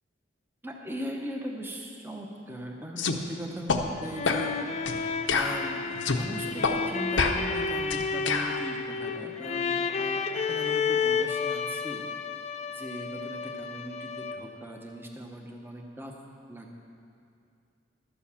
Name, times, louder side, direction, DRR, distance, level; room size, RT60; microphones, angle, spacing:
voice 1, 0.6-4.6 5.3-12.0 12.7-16.1 16.5-16.9, equal, 10° right, 1 dB, 0.9 m, -39 dB
sound 1, 3.0-3.2 3.7-3.8 4.3-4.5 4.9-5.0 5.3-6.2 6.6-6.8 7.2-8.6, left 4 dB, 80° left, 0.8 m, -27 dB
sound 2, 3.8-14.6, left 5 dB, 35° left, 0.3 m, -31 dB
12.5 x 7.1 x 7.1 m, 2.5 s
head